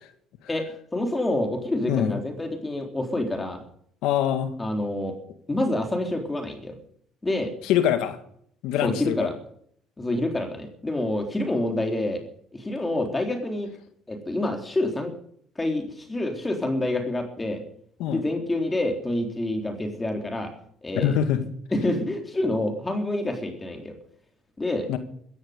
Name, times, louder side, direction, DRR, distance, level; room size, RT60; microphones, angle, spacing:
voice 1, 0.5-3.6 4.6-5.1 5.5-6.7 7.2-7.5 8.8-9.3 10.0-12.2 12.5-13.7 14.1-15.1 15.6-17.6 18.1-20.5 20.8-21.2 21.7-23.9 24.6-24.9, left 1 dB, 20° left, 3 dB, 3.8 m, -27 dB
voice 2, 1.9-2.2 4.0-4.6 7.6-8.2 8.6-9.3 18.0-18.2 21.0-21.5 24.9-25.0, left 10 dB, 80° left, 9 dB, 2.0 m, -24 dB
16.0 x 14.5 x 5.3 m, 0.64 s
supercardioid pair, 85°, 0 cm